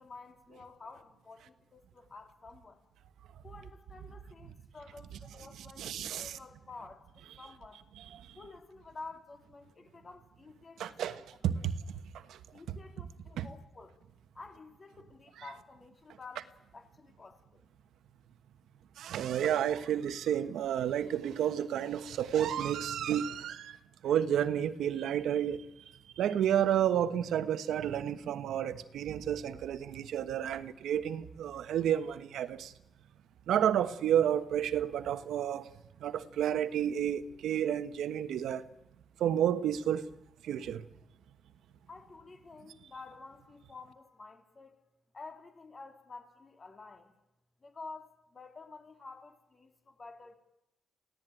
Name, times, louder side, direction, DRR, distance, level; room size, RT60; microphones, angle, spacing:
voice 1, 0.0-2.8 3.4-7.9 8.4-11.2 12.5-14.0 14.3-17.7 41.9-44.8 45.1-47.1 47.6-50.3, left 3 dB, 35° left, 5 dB, 3.7 m, -50 dB
voice 2, 5.8-6.4 8.1-8.3 10.8-11.8 12.3-12.4 12.7-12.8 13.4-13.5 19.0-23.8 24.0-25.7 26.2-32.7 33.5-35.7 36.0-38.7 39.2-40.1 40.4-40.8, right 10 dB, 90° right, 12 dB, 1.3 m, -31 dB
28.5 x 17.0 x 9.2 m, 0.87 s
cardioid pair, 120°, 0 cm